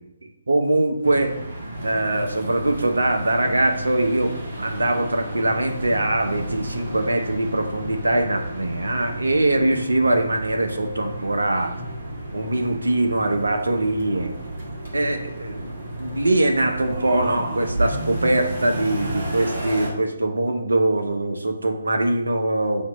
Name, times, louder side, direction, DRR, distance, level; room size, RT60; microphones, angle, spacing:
voice 1, 0.5-1.4 1.8-11.7 12.3-14.3 14.9-15.7 16.0-22.9, right 1 dB, 75° right, 5 dB, 0.8 m, -22 dB
sound 1, 1.0-19.9, right 1 dB, 55° right, 1.7 m, -32 dB
6.3 x 2.9 x 5.2 m, 0.83 s
figure-of-eight pair, 140°, 0 cm